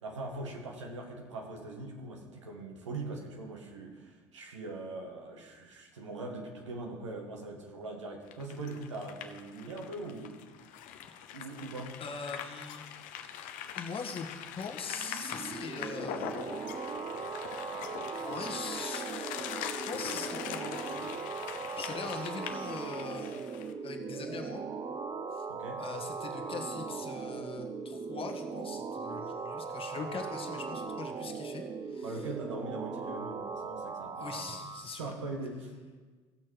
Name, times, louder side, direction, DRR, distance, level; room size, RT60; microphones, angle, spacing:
voice 1, 0.0-10.4 11.3-12.0 25.5-25.8 32.0-35.7, right 2 dB, 90° right, 2 dB, 1.4 m, -41 dB
sound 1, 8.3-23.7, left 9 dB, 65° left, 0.8 m, -42 dB
voice 2, 12.0-12.8 13.8-16.5 18.1-19.5 19.9-21.0 21.7-23.4 23.8-24.6 25.3-25.4 25.8-32.3 34.1-35.1, left 5 dB, 40° left, 3 dB, 1.6 m, -42 dB
sound 2, 14.9-34.9, right 5 dB, 40° right, 0.9 m, -39 dB
16.5 x 6.3 x 4.7 m, 1.4 s
hypercardioid pair, 60°, 15 cm